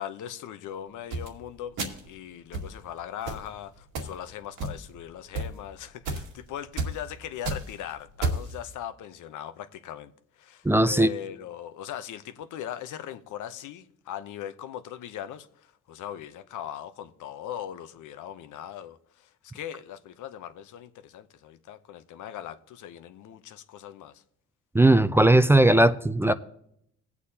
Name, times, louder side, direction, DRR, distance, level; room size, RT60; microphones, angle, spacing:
voice 1, 0.0-1.8 2.0-10.1 10.4-24.2, left 10 dB, 80° left, 0.8 m, -40 dB
sound 1, 1.1-1.3 1.8-2.1 2.5-2.7 3.3-3.5 4.0-4.2 4.6-5.0 5.3-5.5 6.1-6.3 6.8-7.0 7.3-7.7 8.2-8.5, right 2 dB, 90° right, 2.1 m, -30 dB
voice 2, 10.6-11.1 24.7-26.3, right 1 dB, 10° right, 0.4 m, -18 dB
18.5 x 8.3 x 2.8 m
cardioid pair, 90°, 30 cm